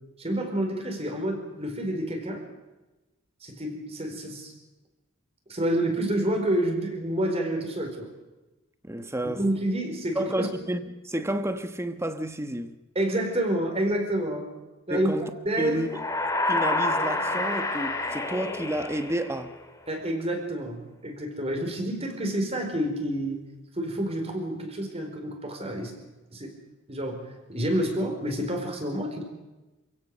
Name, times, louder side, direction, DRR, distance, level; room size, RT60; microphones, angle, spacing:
voice 1, 0.2-2.4 3.4-4.5 5.5-8.1 9.3-10.5 12.9-14.5 14.9-15.9 19.9-23.4 23.7-25.9 26.3-26.6 26.9-29.2, right 1 dB, 30° right, 4.6 m, -28 dB
voice 2, 8.8-9.4 10.1-12.8 14.9-15.3 15.6-15.9 16.5-19.6, right 1 dB, 10° right, 1.2 m, -31 dB
sound 1, 15.8-19.7, left 2 dB, 15° left, 2.0 m, -28 dB
27.5 x 16.5 x 6.7 m
head